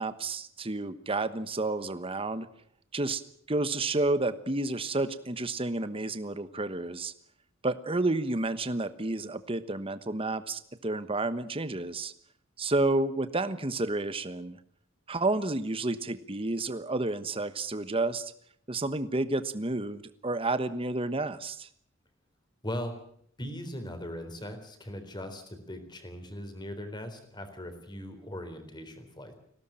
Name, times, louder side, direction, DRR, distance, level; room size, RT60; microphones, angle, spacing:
voice 1, 0.0-2.5 2.9-3.2 3.5-7.1 7.6-12.1 12.6-14.6 15.1-18.3 18.7-21.7, right 2 dB, 30° right, 12 dB, 1.2 m, -30 dB
voice 2, 22.6-23.0 23.4-29.4, left 1 dB, 20° left, 8 dB, 3.9 m, -39 dB
20.5 x 17.0 x 8.9 m, 0.65 s
head